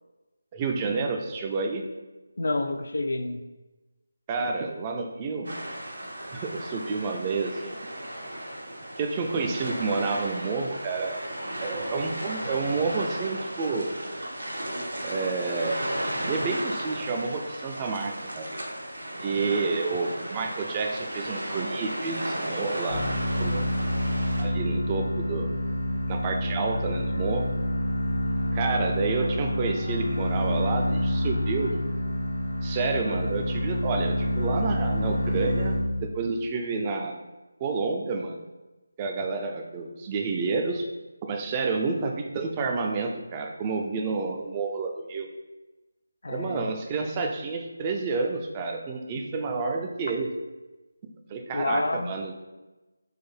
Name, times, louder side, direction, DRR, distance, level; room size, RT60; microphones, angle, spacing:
voice 1, 0.5-1.8 4.3-5.6 6.3-7.8 9.0-11.2 11.6-13.9 15.0-15.8 16.3-18.5 19.2-23.1 23.4-23.6 24.4-25.5 26.1-27.5 28.5-31.9 32.6-37.2 37.6-38.4 39.0-40.9 41.2-45.3 46.3-50.3 51.3-52.3, right 4 dB, 20° right, 3 dB, 0.3 m, -29 dB
voice 2, 2.4-3.4 46.2-46.7 51.5-52.1, left 2 dB, 65° left, 8 dB, 0.3 m, -28 dB
sound 1, 5.4-24.4, right 1 dB, 80° right, 0.8 m, -35 dB
sound 2, 22.9-36.3, left 1 dB, 80° left, 0.8 m, -28 dB
4.6 x 2.0 x 3.2 m, 1.1 s
figure-of-eight pair, 160°, 0 cm